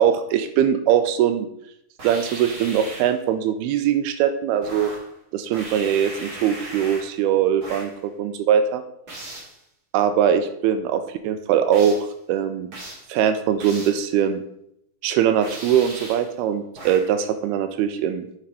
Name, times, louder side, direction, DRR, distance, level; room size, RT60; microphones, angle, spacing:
voice 1, 0.0-1.5 2.0-4.9 5.3-8.8 9.9-12.7 13.1-14.4 15.0-18.3, right 9 dB, 85° right, 9 dB, 2.6 m, -21 dB
sound 1, 2.0-3.2 4.6-5.1 5.5-7.2 7.6-8.0 9.1-9.6 11.7-12.1 12.7-13.1 13.6-14.1 15.4-16.3 16.8-17.2, right 1 dB, 35° right, 2.0 m, -38 dB
8.4 x 6.1 x 4.9 m, 0.75 s
omnidirectional pair, 4.6 m